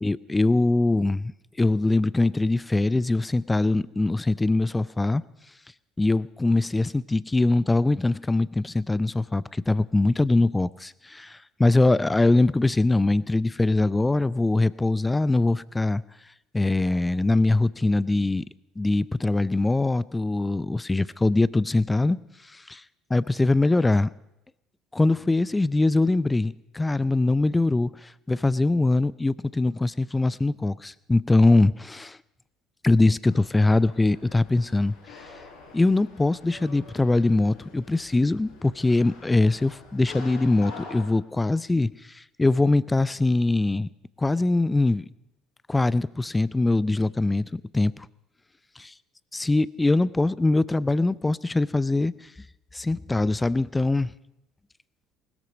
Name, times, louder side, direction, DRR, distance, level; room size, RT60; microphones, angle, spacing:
voice 1, 0.0-1.3 1.6-5.2 6.0-16.0 16.5-18.4 18.8-22.2 22.4-22.8 23.1-24.1 24.9-32.2 32.8-35.2 35.7-43.9 44.2-45.1 45.7-48.1 49.3-52.3 52.7-54.1, left 2 dB, 15° left, 20 dB, 0.6 m, -22 dB
sound 1, 33.2-41.0, left 4 dB, 65° left, 4.7 m, -46 dB
20.0 x 13.5 x 5.2 m, 0.88 s
figure-of-eight pair, 60°, 0 cm